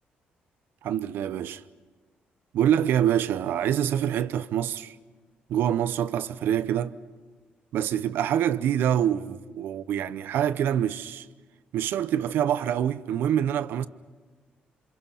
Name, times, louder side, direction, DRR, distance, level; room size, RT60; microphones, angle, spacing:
voice 1, 0.8-1.6 2.5-4.9 5.5-7.0 7.7-11.3 11.7-13.9, right 10 dB, 80° right, 0.8 m, -25 dB
28.5 x 27.0 x 5.7 m
cardioid pair, 90°, 4 cm